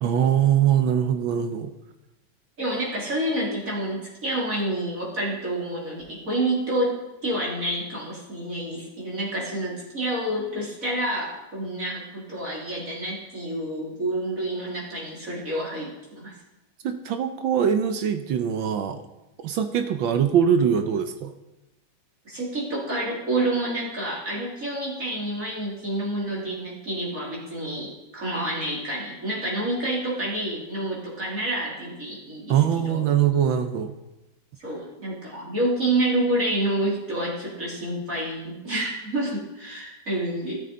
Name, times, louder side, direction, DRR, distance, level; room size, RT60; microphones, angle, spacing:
voice 1, 0.0-1.7 16.8-19.0 19.4-21.3 32.5-33.9, right 8 dB, 75° right, 7 dB, 1.6 m, -22 dB
voice 2, 2.6-16.3 22.2-32.6 32.9-33.0 34.6-40.6, right 1 dB, 40° right, -5 dB, 3.3 m, -28 dB
13.5 x 13.0 x 3.9 m, 0.99 s
omnidirectional pair, 2.2 m